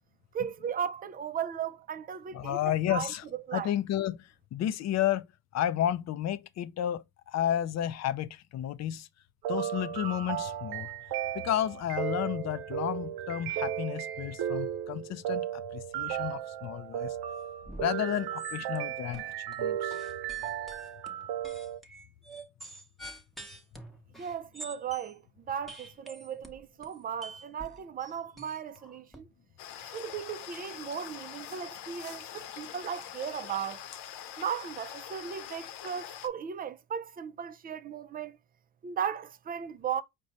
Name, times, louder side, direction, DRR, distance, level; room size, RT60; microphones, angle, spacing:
voice 1, 0.3-2.6 2.9-3.7 24.2-25.2 25.5-29.3 29.8-33.8 34.4-38.4 38.8-40.0, right 8 dB, 25° right, 0.4 m, -36 dB
voice 2, 2.3-3.2 3.5-9.1 9.5-10.9 11.3-17.2 17.8-20.0, left 11 dB, 45° left, 0.4 m, -32 dB
sound 1, 9.4-21.8, right 10 dB, 70° right, 0.7 m, -35 dB
sound 2, 17.6-17.9 18.1-18.8 19.1-19.6 19.9-25.1 25.7-29.2, right 1 dB, ahead, 0.8 m, -47 dB
sound 3, 29.6-36.3, left 10 dB, 75° left, 0.8 m, -44 dB
4.8 x 2.2 x 4.0 m
cardioid pair, 110°, 41 cm